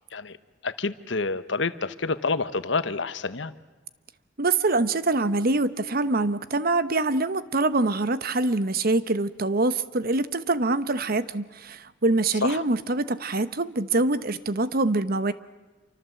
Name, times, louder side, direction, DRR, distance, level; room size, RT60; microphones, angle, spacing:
voice 1, 0.6-3.5 12.4-12.6, left 3 dB, 70° left, 13 dB, 1.1 m, -28 dB
voice 2, 4.4-15.3, right 2 dB, 50° right, 14 dB, 1.0 m, -24 dB
28.0 x 24.5 x 7.8 m, 1.2 s
head